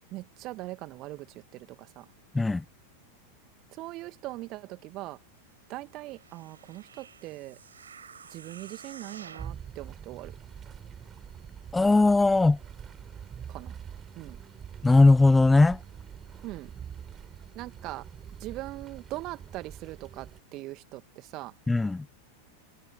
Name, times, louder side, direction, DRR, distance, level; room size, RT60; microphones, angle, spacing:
voice 1, 0.1-2.1 3.7-5.2 5.7-7.6 8.3-10.3 13.5-13.7 14.2-14.4 16.4-16.7 17.6-18.1 18.4-21.5, right 19 dB, 40° right, 2.2 m, -41 dB
sound 1, 6.1-9.6 10.2-10.3, right 6 dB, 70° right, 6.7 m, -49 dB
sound 2, 9.4-20.4, right 8 dB, 25° right, 4.0 m, -44 dB
voice 2, 11.7-12.6 14.8-15.8 21.7-22.1, left 3 dB, 10° left, 0.8 m, -19 dB
figure-of-eight pair, 90°, 0 cm